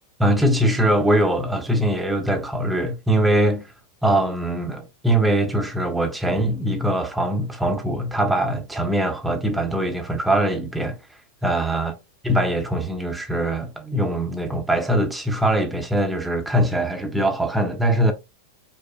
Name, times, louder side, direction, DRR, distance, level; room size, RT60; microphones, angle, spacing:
voice 1, 0.2-3.7 4.0-11.0 11.4-11.9 12.3-18.1, right 1 dB, 5° right, 0.6 m, -22 dB
5.0 x 2.0 x 2.4 m
figure-of-eight pair, 90°, 0 cm